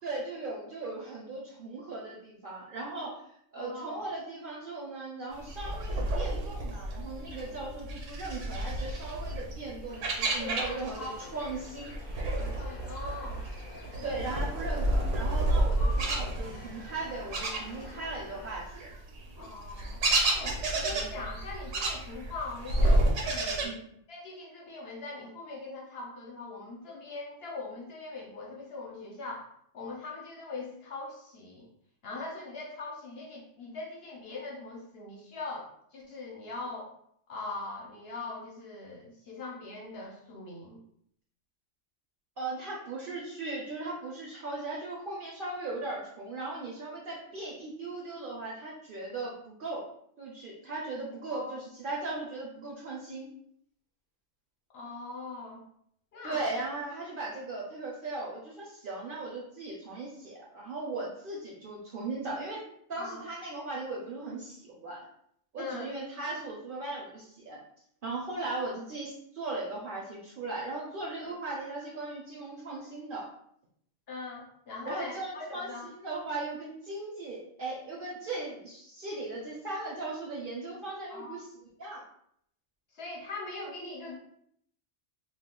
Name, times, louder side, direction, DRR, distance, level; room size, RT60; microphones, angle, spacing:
voice 1, 0.0-3.2 3.5-11.9 14.0-18.9 23.6-23.8 42.4-49.9 50.2-53.3 56.2-62.6 62.9-65.0 65.5-67.6 68.0-73.3 74.8-82.0, right 2 dB, 55° right, -3 dB, 0.6 m, -38 dB
voice 2, 3.6-4.1 10.3-11.2 12.3-13.4 13.9-14.1 15.8-15.9 19.4-20.0 20.3-23.8 24.1-29.5 29.7-31.7 32.0-36.9 37.3-40.8 51.3-51.5 54.7-55.6 56.1-56.5 63.0-63.2 65.6-65.9 74.1-75.9 81.1-81.4 82.9-84.2, left 3 dB, 60° left, -2 dB, 0.9 m, -41 dB
sound 1, 5.4-11.1 11.4-18.2 18.5-23.7, right 1 dB, 75° right, 1.0 m, -30 dB
sound 2, 9.9-18.5, left 2 dB, 10° left, 0.4 m, -48 dB
2.4 x 2.3 x 3.6 m, 0.69 s
omnidirectional pair, 1.3 m